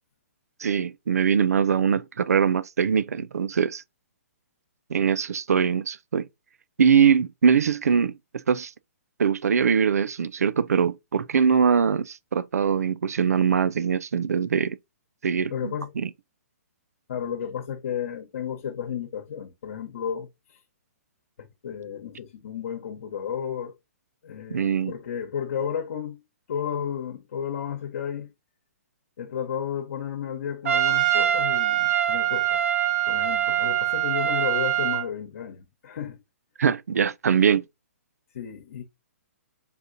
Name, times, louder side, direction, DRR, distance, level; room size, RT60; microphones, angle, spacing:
voice 1, 0.6-3.8 4.9-6.3 6.8-8.7 9.2-14.8 15.2-16.1 24.5-24.9 36.6-37.6, right 7 dB, 85° right, 0.4 m, -22 dB
voice 2, 15.5-15.9 17.1-20.6 21.4-23.7 24.2-26.2 26.5-28.3 29.2-32.6 33.1-36.2 38.3-38.8, left 8 dB, 65° left, 1.0 m, -33 dB
Trumpet, 30.7-35.1, right 11 dB, 65° right, 1.1 m, -23 dB
4.1 x 3.6 x 2.6 m
hypercardioid pair, 145°, 8 cm